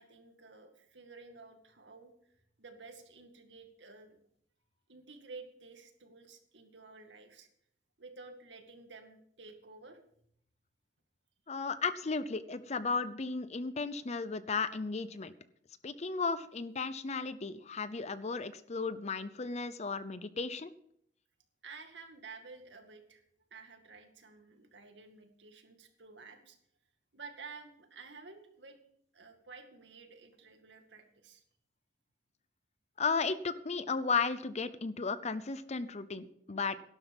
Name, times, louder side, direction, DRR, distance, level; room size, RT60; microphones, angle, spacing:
voice 1, 0.0-2.3 2.6-4.2 4.9-7.5 8.0-10.0 21.6-23.2 23.5-26.6 27.1-28.8 29.1-31.4, right 4 dB, 80° right, 5 dB, 2.1 m, -52 dB
voice 2, 11.5-15.3 15.8-20.7 33.0-36.8, left 4 dB, 40° left, 15 dB, 0.7 m, -34 dB
12.0 x 11.5 x 5.4 m, 0.69 s
head